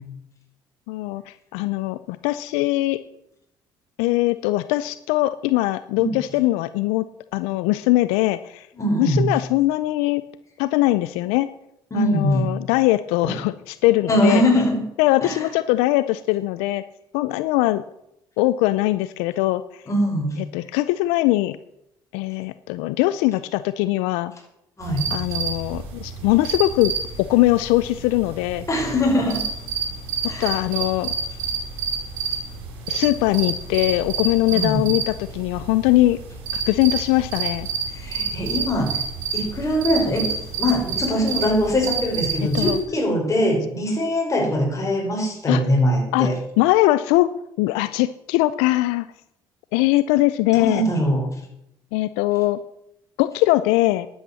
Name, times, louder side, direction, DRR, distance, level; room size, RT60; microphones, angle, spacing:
voice 1, 0.9-3.0 4.0-7.0 7.3-8.7 9.0-10.2 10.6-11.5 11.9-14.4 15.0-16.8 17.1-17.8 18.4-19.8 20.4-21.6 22.1-24.3 25.1-26.9 27.2-28.6 30.4-31.1 32.9-36.2 36.5-37.7 42.5-42.8 45.5-45.6 46.1-46.3 46.6-47.3 47.6-49.1 49.7-50.8 51.9-52.6 53.2-54.1, left 17 dB, 90° left, 15 dB, 0.4 m, -21 dB
voice 2, 8.8-9.3 11.9-12.5 13.2-13.3 14.1-14.8 15.2-15.5 19.9-20.4 24.8-25.2 28.7-29.4 30.3-30.6 34.5-34.9 37.9-39.0 39.3-46.4 50.5-51.3, equal, 30° left, 0 dB, 5.6 m, -22 dB
sound 1, 24.8-42.8, right 5 dB, 80° right, 4.5 m, -29 dB
11.0 x 8.8 x 7.0 m, 0.81 s
supercardioid pair, 75°, 10 cm